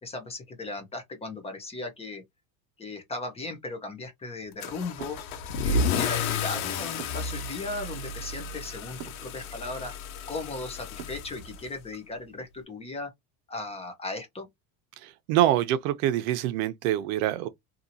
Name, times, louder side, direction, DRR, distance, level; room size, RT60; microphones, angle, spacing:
voice 1, 0.0-2.2 2.8-5.2 5.6-9.9 10.3-13.1 13.5-14.5, left 3 dB, 15° left, 0.6 m, -37 dB
Car / Engine starting / Accelerating revving vroom, 4.6-12.0, left 4 dB, 85° left, 0.9 m, -32 dB
sound 1, 5.0-5.3 7.0-7.4 9.0-9.3 11.0-11.4, right 8 dB, 45° right, 1.0 m, -43 dB
voice 2, 15.0-17.5, right 13 dB, 75° right, 0.7 m, -25 dB
2.8 x 2.7 x 2.6 m
cardioid pair, 150°, 43 cm